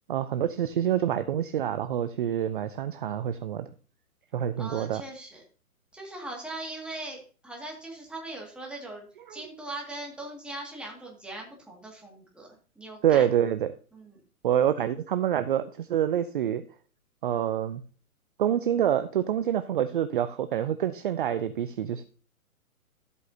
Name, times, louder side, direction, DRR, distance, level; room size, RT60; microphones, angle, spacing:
voice 1, 0.1-3.7 4.3-5.0 9.3-9.4 13.0-13.8 14.4-16.6 17.2-17.8 18.4-22.0, right 10 dB, 40° right, 11 dB, 0.5 m, -26 dB
voice 2, 4.6-5.4 5.9-12.5 12.8-13.3 13.9-14.2, right 2 dB, ahead, -1 dB, 2.0 m, -40 dB
12.5 x 8.2 x 2.7 m, 0.39 s
hypercardioid pair, 145°, 44 cm